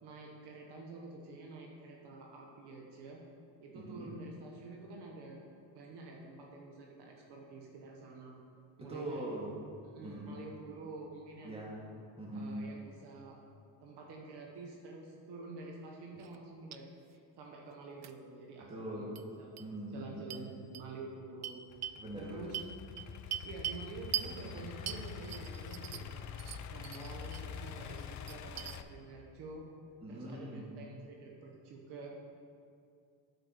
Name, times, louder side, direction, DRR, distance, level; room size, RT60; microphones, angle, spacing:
voice 1, 0.0-3.2 3.6-5.4 5.7-8.3 8.8-9.3 9.9-11.6 12.3-13.4 13.8-16.9 17.4-19.1 19.4-19.5 19.9-21.6 22.1-22.6 23.4-26.3 26.7-29.7 30.1-32.1, right 3 dB, 65° right, -1 dB, 1.3 m, -48 dB
voice 2, 3.7-4.1 8.8-9.6 10.0-10.4 11.4-11.9 12.2-12.7 18.7-19.2 19.6-20.5 22.0-22.5 30.0-30.7, right 1 dB, 15° right, -3 dB, 2.2 m, -42 dB
sound 1, 16.2-16.4 16.7-16.8 18.0-18.1 19.1-19.2 19.6-19.7 20.3-20.4 20.7-20.8 21.4-22.0 22.5-23.8 24.1-24.3 24.9-26.1 26.4-27.4 27.8-28.8, right 11 dB, 40° right, 0.5 m, -41 dB
Idling / Accelerating revving vroom, 21.7-28.8, left 7 dB, 45° left, 0.6 m, -46 dB
8.0 x 5.0 x 6.4 m, 2.4 s
supercardioid pair, 85°, 42 cm